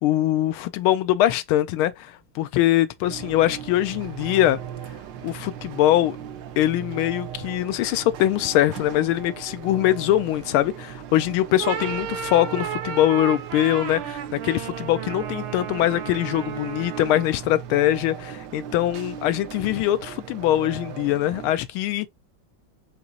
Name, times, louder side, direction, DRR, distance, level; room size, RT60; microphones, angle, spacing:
voice 1, 0.0-4.6 5.2-6.2 6.6-22.1, left 13 dB, 85° left, 1.4 m, -22 dB
sound 1, 3.0-21.5, right 9 dB, 70° right, 1.2 m, -38 dB
sound 2, 11.4-17.5, right 8 dB, 85° right, 1.6 m, -33 dB
5.2 x 2.9 x 2.8 m
omnidirectional pair, 2.3 m